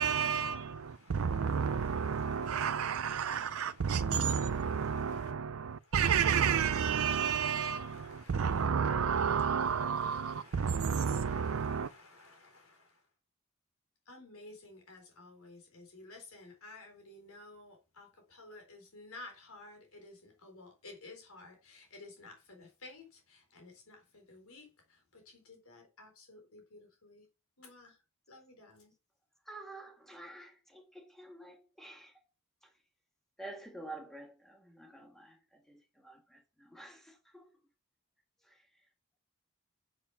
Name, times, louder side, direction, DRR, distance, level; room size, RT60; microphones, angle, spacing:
voice 1, 0.0-11.9, right 7 dB, 70° right, 0.5 m, -31 dB
voice 2, 0.8-5.3 5.8-6.0 6.3-8.7 9.2-13.0 14.1-27.3 27.6-28.0 28.3-28.9, left 2 dB, 80° left, 3.9 m, -54 dB
voice 3, 29.5-32.1 32.6-32.7 33.4-37.5 38.4-38.6, right 2 dB, ahead, 2.0 m, -49 dB
8.7 x 7.5 x 5.7 m
head